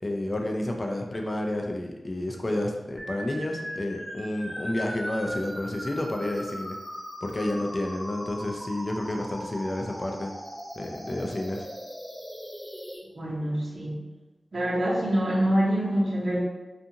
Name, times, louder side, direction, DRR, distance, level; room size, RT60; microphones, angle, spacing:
voice 1, 0.0-6.8 7.2-10.3 10.8-11.7, left 1 dB, 30° left, 1 dB, 0.4 m, -30 dB
sound 1, 3.0-13.0, equal, 5° left, 0.8 m, -39 dB
voice 2, 13.1-14.0 14.5-16.4, right 1 dB, 50° right, -6 dB, 0.8 m, -25 dB
2.5 x 2.4 x 2.7 m, 1.1 s
wide cardioid pair, 85°, 0 cm